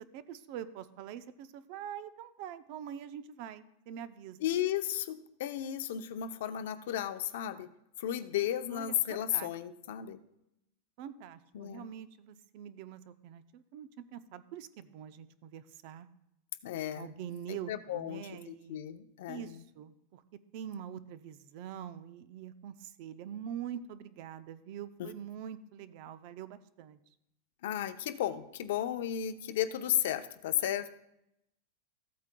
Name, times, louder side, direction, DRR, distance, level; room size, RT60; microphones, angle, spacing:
voice 1, 0.0-4.5 8.7-9.5 11.0-16.1 17.0-18.8 19.3-27.0, right 9 dB, 45° right, 13 dB, 0.5 m, -44 dB
voice 2, 4.4-7.7 8.0-10.2 11.5-11.9 16.6-17.1 17.5-19.6 25.0-25.1 27.6-30.9, left 11 dB, 65° left, 10 dB, 0.6 m, -34 dB
15.0 x 8.3 x 2.2 m, 0.81 s
supercardioid pair, 165°, 0 cm